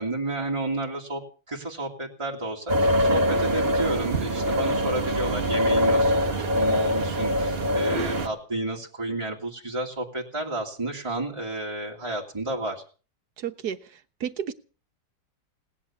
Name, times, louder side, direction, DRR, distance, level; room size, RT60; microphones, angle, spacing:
voice 1, 0.0-12.8, right 2 dB, 15° right, -2 dB, 2.5 m, -31 dB
sound 1, 2.7-8.3, equal, 35° right, 1.5 m, -23 dB
voice 2, 7.9-8.2 13.4-14.5, right 8 dB, 60° right, 9 dB, 1.7 m, -33 dB
18.5 x 11.0 x 7.2 m, 0.39 s
omnidirectional pair, 2.0 m